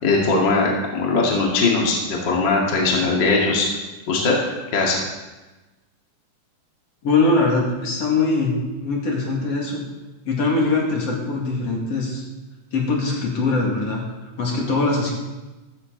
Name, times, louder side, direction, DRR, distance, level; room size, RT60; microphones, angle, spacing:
voice 1, 0.0-3.7 4.1-4.4 4.7-5.0, left 3 dB, 40° left, -2 dB, 2.6 m, -20 dB
voice 2, 7.0-9.8 10.2-12.2 12.7-14.0 14.4-15.1, left 3 dB, 55° left, -2 dB, 3.2 m, -22 dB
15.0 x 14.0 x 4.0 m, 1.1 s
omnidirectional pair, 3.4 m